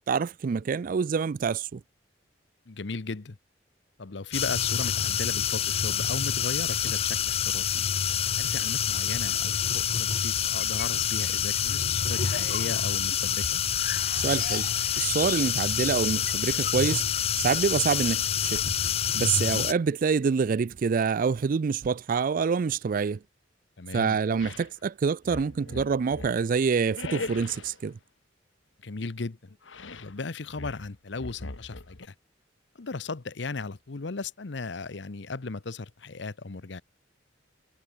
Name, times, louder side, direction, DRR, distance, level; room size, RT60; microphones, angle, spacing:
voice 1, 0.1-1.8 14.1-14.7 15.0-17.0 17.4-18.6 19.1-23.2 23.9-28.0, right 5 dB, 50° right, 0.4 m, -26 dB
voice 2, 2.7-3.4 4.0-7.8 8.4-13.6 19.3-19.7 23.8-24.2 28.8-29.6 29.9-32.1 32.7-36.8, left 3 dB, 65° left, 0.9 m, -36 dB
sound 1, 4.3-19.7, left 9 dB, 35° left, 0.5 m, -27 dB
sound 2, 10.6-11.2 11.6-15.7 16.0-16.1 16.3-17.2, left 7 dB, 50° left, 1.5 m, -39 dB
sound 3, 24.4-24.7 25.2-26.4 26.9-27.8 29.6-30.2 30.5-32.1, left 3 dB, 90° left, 1.6 m, -40 dB
head